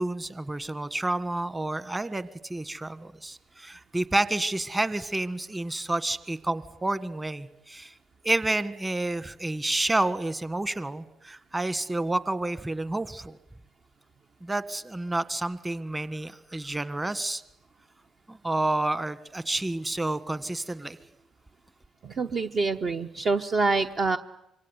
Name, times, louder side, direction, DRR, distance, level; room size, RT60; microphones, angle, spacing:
voice 1, 0.0-7.9 8.2-13.4 14.4-17.4 18.3-21.0, right 2 dB, 15° right, 15 dB, 1.6 m, -29 dB
voice 2, 22.0-24.2, right 3 dB, 45° right, 6 dB, 1.0 m, -26 dB
26.0 x 24.0 x 9.5 m, 0.83 s
figure-of-eight pair, 50°, 0 cm